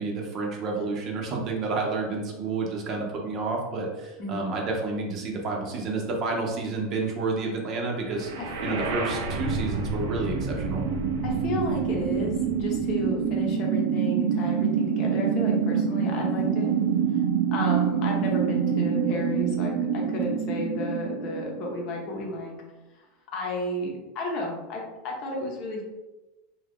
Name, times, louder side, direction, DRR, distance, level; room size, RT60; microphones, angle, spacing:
voice 1, 0.0-8.3 8.6-10.8, right 3 dB, 35° right, 0 dB, 0.7 m, -30 dB
sound 1, 8.1-22.1, right 7 dB, 75° right, 0.5 m, -26 dB
voice 2, 8.4-8.9 11.2-16.7 17.5-22.5 22.9-23.0 23.3-25.8, left 1 dB, 45° left, 0 dB, 0.7 m, -32 dB
2.6 x 2.4 x 3.5 m, 1.1 s
supercardioid pair, 140°, 0 cm